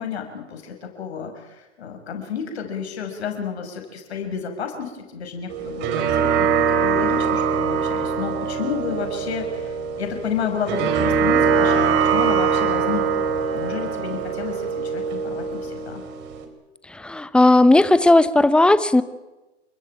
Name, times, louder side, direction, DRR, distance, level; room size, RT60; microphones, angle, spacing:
voice 1, 0.0-16.0, left 7 dB, 70° left, 5.9 m, -31 dB
sound 1, 5.5-16.4, right 6 dB, 30° right, 3.8 m, -22 dB
voice 2, 16.9-19.0, left 2 dB, 5° left, 0.7 m, -15 dB
29.0 x 14.0 x 9.0 m
hypercardioid pair, 130°, 33 cm